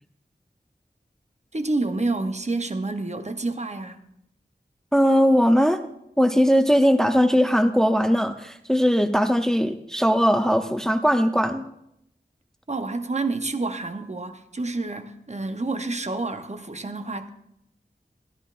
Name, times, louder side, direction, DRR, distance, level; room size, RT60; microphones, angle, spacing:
voice 1, 1.5-4.0 12.7-17.3, right 3 dB, 40° right, 0.8 m, -28 dB
voice 2, 4.9-5.8 6.2-11.6, equal, 5° left, 0.6 m, -19 dB
14.0 x 12.5 x 2.5 m
wide cardioid pair, 45°, 17 cm